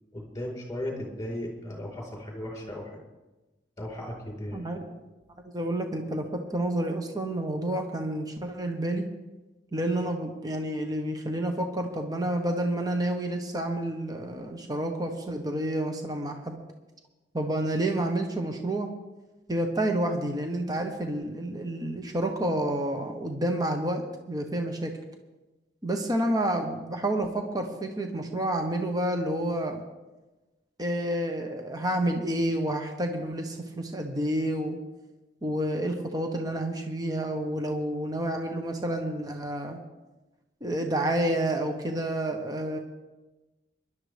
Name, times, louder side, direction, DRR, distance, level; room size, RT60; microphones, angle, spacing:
voice 1, 0.1-2.9 3.8-4.7, left 1 dB, 20° left, -1 dB, 4.4 m, -36 dB
voice 2, 4.5-4.9 5.5-9.0 9.7-16.6 17.3-18.9 19.5-24.9 25.8-29.8 30.8-34.8 35.4-39.8 40.6-42.8, right 1 dB, 20° right, 3 dB, 1.1 m, -29 dB
23.5 x 11.5 x 3.5 m, 1.1 s
head